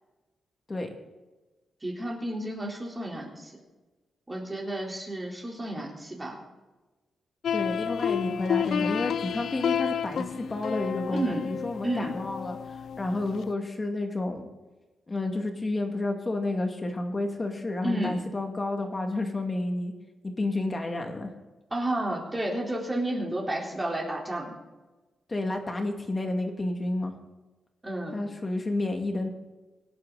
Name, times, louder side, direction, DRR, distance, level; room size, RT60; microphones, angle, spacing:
voice 1, 1.8-3.5 4.3-6.4 11.1-11.4 11.8-12.2 17.8-18.2 21.7-24.5 27.8-28.2, right 1 dB, 15° right, -2 dB, 4.0 m, -31 dB
sound 1, 7.4-13.5, left 8 dB, 70° left, 0.5 m, -31 dB
voice 2, 7.5-14.5 15.1-19.9 20.2-21.3 25.3-27.1 28.1-29.3, left 2 dB, 25° left, 4 dB, 2.3 m, -30 dB
24.5 x 9.4 x 4.1 m, 1.2 s
wide cardioid pair, 130°, 0 cm